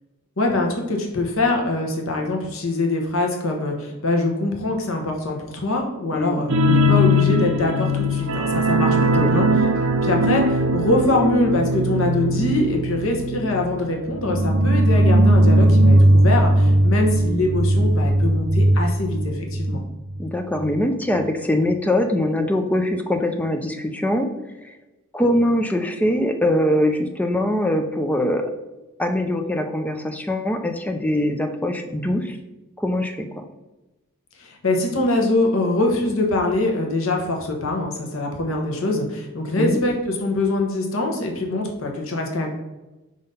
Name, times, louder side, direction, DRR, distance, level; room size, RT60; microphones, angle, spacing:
voice 1, 0.4-9.5 10.0-19.8 34.4-42.5, left 2 dB, 75° left, 1 dB, 1.1 m, -23 dB
voice 2, 6.1-6.4 9.2-9.3 19.7-19.8 20.2-24.3 24.6-24.7 25.1-28.5 29.0-32.4 32.8-33.5 39.6-39.8, left 1 dB, 5° left, 6 dB, 0.5 m, -22 dB
sound 1, 6.5-19.8 20.1-20.2 20.6-20.7, right 1 dB, 70° right, 0.5 m, -18 dB
5.0 x 3.9 x 5.5 m, 1.1 s
head